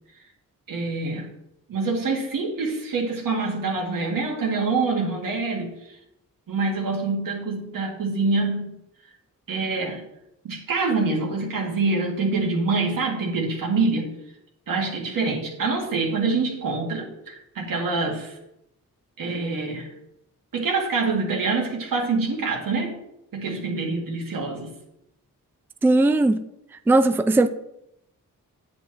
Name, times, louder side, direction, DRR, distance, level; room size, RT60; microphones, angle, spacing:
voice 1, 0.7-1.3 1.7-6.0 6.5-8.8 9.5-10.0 10.4-14.1 14.7-18.4 19.2-19.9 20.5-23.0 23.3-24.7, right 3 dB, 90° right, 0 dB, 2.0 m, -25 dB
voice 2, 25.8-26.4 26.9-27.5, right 2 dB, 5° right, 10 dB, 0.3 m, -18 dB
9.6 x 8.3 x 3.1 m, 0.81 s
wide cardioid pair, 125°, 33 cm